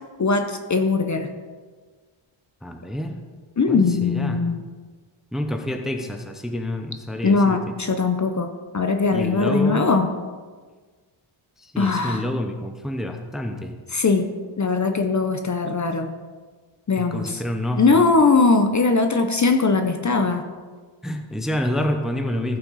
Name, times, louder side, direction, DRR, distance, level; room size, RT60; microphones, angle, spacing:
voice 1, 0.2-1.3 3.6-4.6 7.2-10.1 11.8-12.2 13.9-14.3 14.6-16.1 16.9-17.4 17.8-20.5, left 4 dB, 35° left, 7 dB, 0.6 m, -20 dB
voice 2, 2.6-3.2 3.7-4.5 5.3-7.6 9.1-10.0 11.6-13.7 17.0-18.0 21.0-22.6, left 1 dB, ahead, 5 dB, 0.6 m, -28 dB
15.0 x 5.8 x 4.0 m, 1.5 s
wide cardioid pair, 165°, 49 cm